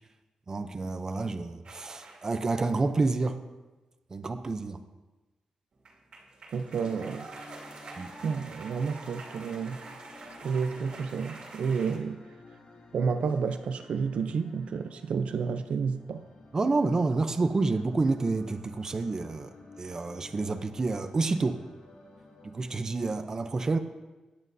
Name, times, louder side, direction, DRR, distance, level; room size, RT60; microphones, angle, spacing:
voice 1, 0.5-3.4 4.1-4.8 7.9-8.1 16.5-21.6 22.4-23.8, right 3 dB, 30° right, 0.6 m, -29 dB
sound 1, 1.6-2.4 5.7-12.0, right 3 dB, 55° right, 2.1 m, -46 dB
voice 2, 6.5-7.3 8.2-9.8 10.4-12.2 12.9-16.2, right 5 dB, 70° right, 0.6 m, -30 dB
sound 2, 6.7-23.2, left 3 dB, 75° left, 2.4 m, -53 dB
16.5 x 10.5 x 2.7 m
wide cardioid pair, 150°, 2 cm